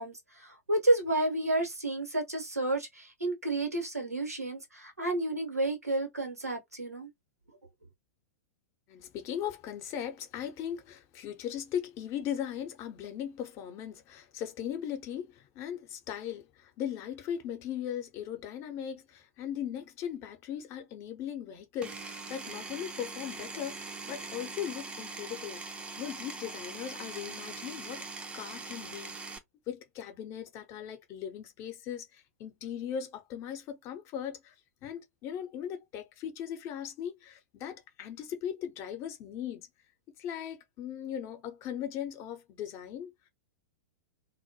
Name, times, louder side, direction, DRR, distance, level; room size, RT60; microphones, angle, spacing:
voice 1, 0.0-7.1, right 2 dB, 90° right, 0.9 m, -31 dB
voice 2, 8.9-25.6 26.0-28.0 28.3-29.1 29.7-34.5 34.8-39.7 40.2-43.1, left 9 dB, 35° left, 0.7 m, -38 dB
Power tool, 21.8-29.4, right 3 dB, 15° right, 0.4 m, -42 dB
2.1 x 2.1 x 2.7 m
figure-of-eight pair, 100°, 8 cm